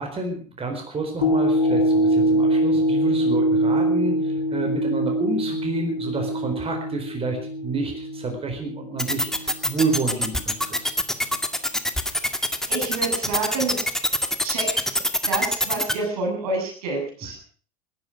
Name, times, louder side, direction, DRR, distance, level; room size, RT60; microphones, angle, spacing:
voice 1, 0.0-10.9, right 3 dB, 30° right, 4 dB, 4.4 m, -29 dB
sound 1, 1.2-9.6 10.1-10.2, right 1 dB, 80° left, 2.7 m, -23 dB
sound 2, 9.0-15.9, left 1 dB, ahead, 2.2 m, -23 dB
voice 2, 12.7-13.8 14.4-14.8 15.3-17.4, right 3 dB, 75° right, 2 dB, 7.2 m, -28 dB
20.0 x 11.0 x 6.1 m, 0.43 s
hypercardioid pair, 65°, 19 cm